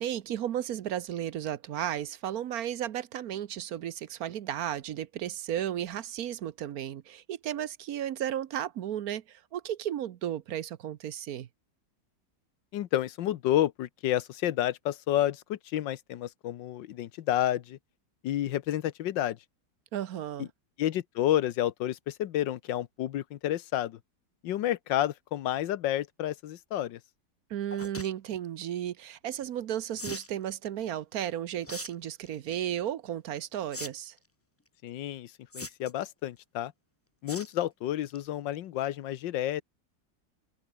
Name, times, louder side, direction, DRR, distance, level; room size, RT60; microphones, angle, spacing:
voice 1, 0.0-11.5 19.9-20.5 27.5-34.1, right 11 dB, 60° right, 1.2 m, -34 dB
voice 2, 12.7-17.8 18.2-19.4 20.4-20.5 20.8-24.0 24.4-27.0 34.8-36.7 37.2-39.6, left 12 dB, 90° left, 1.6 m, -30 dB
sound 1, 27.7-28.1 30.0-30.3 31.6-31.9 32.3-32.6 33.7-33.9 34.2-34.3 35.5-36.0 37.3-37.5 37.9-38.2 38.5-38.6 38.8-38.9, left 2 dB, 10° left, 0.7 m, -40 dB
omnidirectional pair, 1.9 m